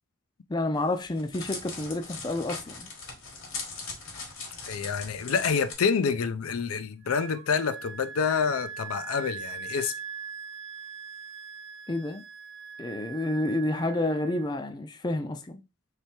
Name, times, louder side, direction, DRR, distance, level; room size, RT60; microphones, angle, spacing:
voice 1, 0.5-2.9 11.9-12.2 12.8-15.6, left 2 dB, 20° left, 0.4 m, -29 dB
Crackle, 0.8-5.7, left 4 dB, 70° left, 1.5 m, -40 dB
voice 2, 4.7-9.9, left 6 dB, 90° left, 0.5 m, -27 dB
Wind instrument woodwind instrument, 7.0-14.5, right 6 dB, 65° right, 0.6 m, -41 dB
3.3 x 3.2 x 4.3 m
head